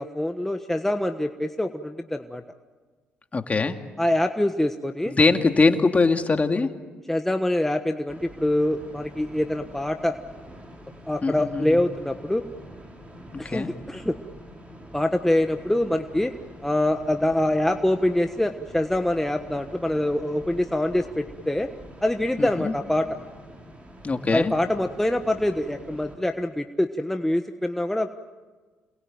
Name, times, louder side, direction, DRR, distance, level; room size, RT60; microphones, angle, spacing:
voice 1, 0.0-2.4 4.0-5.1 7.1-10.1 11.1-12.4 13.4-14.2 14.9-16.3 16.6-21.7 22.0-23.1 24.3-28.2, left 1 dB, 5° left, 6 dB, 1.4 m, -25 dB
voice 2, 3.3-3.8 5.1-6.7 11.2-11.8 13.3-13.7 22.4-22.7 24.0-24.5, left 3 dB, 30° left, 6 dB, 2.3 m, -22 dB
sound 1, 8.1-26.1, equal, 25° right, 6.7 m, -45 dB
28.5 x 21.5 x 9.2 m, 1.4 s
supercardioid pair, 65°, 5 cm